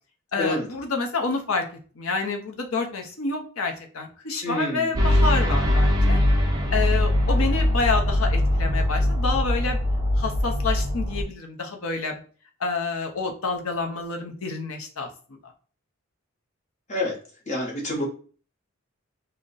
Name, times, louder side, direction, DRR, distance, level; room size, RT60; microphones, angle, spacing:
voice 1, 0.3-1.6 2.0-6.2 6.7-9.8 10.2-12.2 12.6-15.1, left 4 dB, 75° left, 3 dB, 0.6 m, -28 dB
voice 2, 4.4-4.9 16.9-17.1 17.5-18.0, left 1 dB, 35° left, -2 dB, 0.7 m, -27 dB
sound 1, 5.0-11.2, left 1 dB, 15° right, 0.4 m, -21 dB
2.5 x 2.1 x 3.8 m, 0.41 s
head